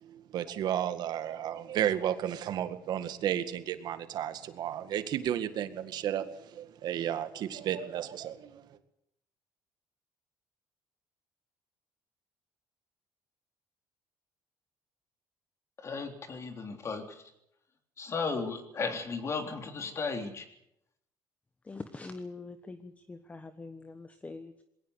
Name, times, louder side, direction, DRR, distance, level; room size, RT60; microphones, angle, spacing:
voice 1, 0.0-8.8, right 10 dB, 65° right, 10 dB, 1.9 m, -33 dB
voice 2, 15.8-17.2 18.0-20.5, left 4 dB, 40° left, 6 dB, 3.6 m, -35 dB
voice 3, 21.6-24.6, left 3 dB, 20° left, 10 dB, 1.3 m, -44 dB
21.0 x 18.0 x 8.2 m, 0.78 s
cardioid pair, 115°, 8 cm